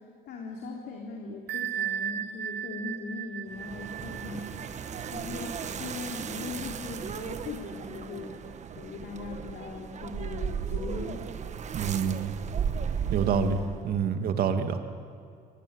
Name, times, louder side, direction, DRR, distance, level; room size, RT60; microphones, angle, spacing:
voice 1, 0.3-8.3 8.7-11.3 13.3-13.7, left 4 dB, 70° left, 0 dB, 3.6 m, -39 dB
Bell, 1.5-6.9, right 9 dB, 80° right, 1.1 m, -37 dB
sound 1, 3.5-13.9, right 7 dB, 45° right, 1.4 m, -35 dB
voice 2, 11.7-12.3 13.1-13.6 13.8-14.8, right 7 dB, 65° right, 7 dB, 2.2 m, -27 dB
23.5 x 19.5 x 9.9 m, 2.3 s
cardioid pair, 110°, 17 cm